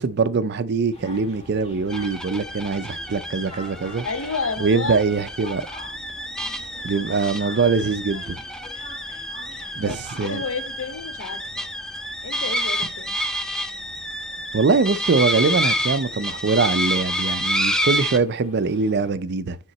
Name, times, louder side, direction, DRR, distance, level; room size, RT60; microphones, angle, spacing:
voice 1, 0.0-4.1 4.6-5.7 6.8-8.4 9.8-10.4 14.5-19.6, right 4 dB, 50° right, 0.4 m, -22 dB
sound 1, 0.9-19.1, left 1 dB, 25° left, 1.2 m, -46 dB
sound 2, 1.9-18.2, equal, 5° left, 0.5 m, -29 dB
voice 2, 4.0-5.0 9.7-11.7 12.2-13.2, left 4 dB, 60° left, 0.8 m, -31 dB
9.3 x 3.7 x 4.1 m
head